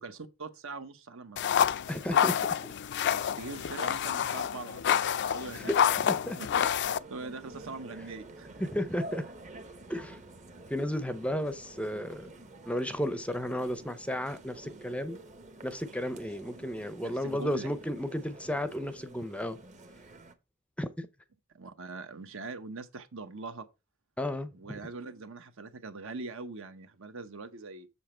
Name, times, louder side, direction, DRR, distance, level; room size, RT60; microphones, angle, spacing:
voice 1, 0.0-1.7 3.4-5.7 6.4-8.7 17.0-17.7 21.5-23.7 24.5-27.9, right 3 dB, 65° right, 1.0 m, -42 dB
sound 1, 1.4-7.0, left 8 dB, 55° left, 0.4 m, -28 dB
voice 2, 1.9-2.4 5.5-5.8 6.1-6.4 8.6-9.2 9.9-10.2 10.7-12.3 12.7-15.2 15.6-19.6 20.8-21.1 24.2-24.5, equal, 5° left, 0.6 m, -33 dB
sound 2, 6.8-20.3, right 2 dB, 35° right, 0.9 m, -49 dB
7.2 x 6.8 x 4.4 m
head